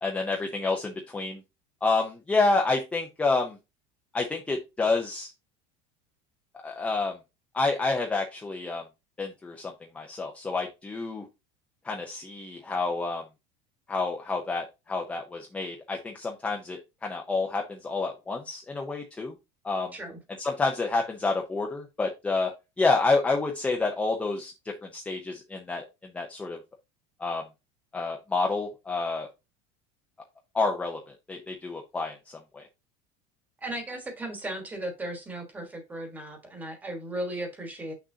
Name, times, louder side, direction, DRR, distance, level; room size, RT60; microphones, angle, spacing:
voice 1, 0.0-1.4 1.8-3.6 4.1-5.3 6.6-7.2 7.5-8.8 9.2-11.2 11.8-13.2 13.9-19.4 19.6-19.9 20.4-22.5 22.8-26.6 27.2-27.4 27.9-29.3 30.5-31.0 31.3-32.2 32.5-32.6, left 3 dB, 10° left, 0.6 m, -28 dB
voice 2, 33.6-37.9, right 1 dB, 10° right, 1.4 m, -36 dB
6.5 x 6.2 x 2.7 m
cardioid pair, 175°, 16 cm